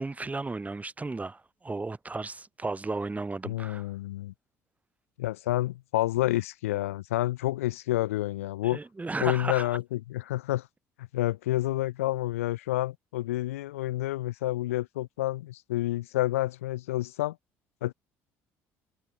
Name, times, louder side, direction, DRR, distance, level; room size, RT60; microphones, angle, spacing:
voice 1, 0.0-3.9 8.6-9.7, right 3 dB, 20° right, 4.8 m, -34 dB
voice 2, 3.4-4.3 5.2-8.8 9.2-10.7 11.1-17.3 17.8-17.9, left 16 dB, 90° left, 0.9 m, -29 dB
hypercardioid pair, 65°, 7 cm